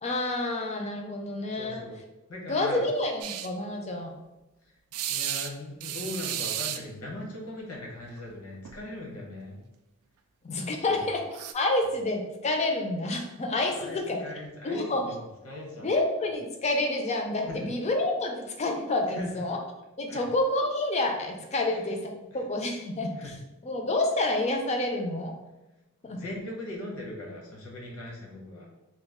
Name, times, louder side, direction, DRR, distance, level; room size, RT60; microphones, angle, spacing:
voice 1, 0.0-1.8 2.5-4.1 10.4-11.2 11.5-14.2 14.6-15.0 15.8-19.6 20.0-23.2 23.7-25.3 26.0-26.2, left 2 dB, 30° left, 3 dB, 0.4 m, -28 dB
voice 2, 1.5-2.0 2.3-2.8 4.6-4.7 5.1-9.6 10.9-11.1 13.7-15.9 17.4-17.7 19.1-19.4 20.1-20.3 21.5-21.8 22.3-22.4 23.2-23.4 26.0-28.7, left 1 dB, 85° left, -1 dB, 0.9 m, -40 dB
sound 1, 3.2-3.5 4.9-5.5 5.8-6.8 8.2-8.4 8.7-8.8 11.3-11.5, right 10 dB, 85° right, 0.3 m, -33 dB
3.0 x 2.3 x 3.5 m, 1.0 s
head